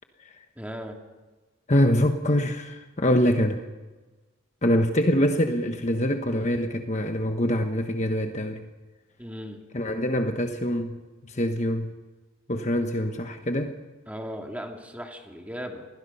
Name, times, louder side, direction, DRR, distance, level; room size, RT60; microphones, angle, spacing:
voice 1, 0.6-1.0 9.2-9.6 14.1-15.9, equal, 5° right, 2 dB, 2.4 m, -37 dB
voice 2, 1.7-3.6 4.6-8.6 9.7-11.0 11.3-11.9 12.5-13.8, equal, 35° left, 5 dB, 1.2 m, -24 dB
27.0 x 20.0 x 5.6 m, 1.2 s
head